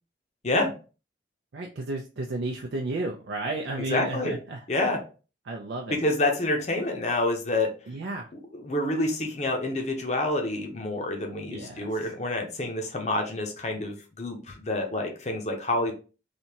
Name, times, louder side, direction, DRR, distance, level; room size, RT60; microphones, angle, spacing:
voice 1, 1.5-4.7 5.4-6.0 7.9-8.3 11.5-12.1 15.8-15.9, right 2 dB, 80° right, 0 dB, 0.5 m, -33 dB
voice 2, 3.9-4.3 4.7-5.0 5.9-7.7 8.6-15.9, left 2 dB, 40° left, 3 dB, 0.7 m, -27 dB
3.3 x 2.8 x 2.8 m, 0.35 s
head